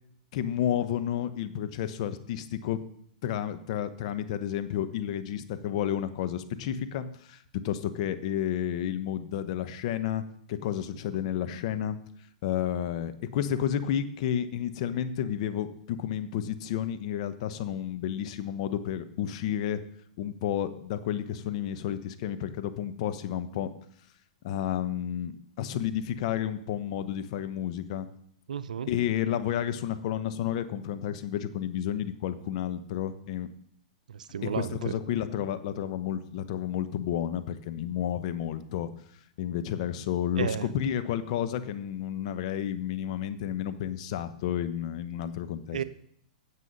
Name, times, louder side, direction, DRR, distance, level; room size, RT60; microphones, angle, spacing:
voice 1, 0.3-2.8 3.2-7.4 7.6-10.2 10.5-12.0 12.4-19.8 20.2-23.7 24.4-28.1 28.9-33.5 34.4-38.9 39.4-45.8, left 10 dB, 55° left, 11 dB, 1.0 m, -31 dB
voice 2, 28.5-28.9 34.1-34.9 40.4-40.7 45.7-45.8, right 8 dB, 80° right, 15 dB, 0.6 m, -32 dB
9.8 x 7.5 x 5.5 m, 0.67 s
hypercardioid pair, 115°, 4 cm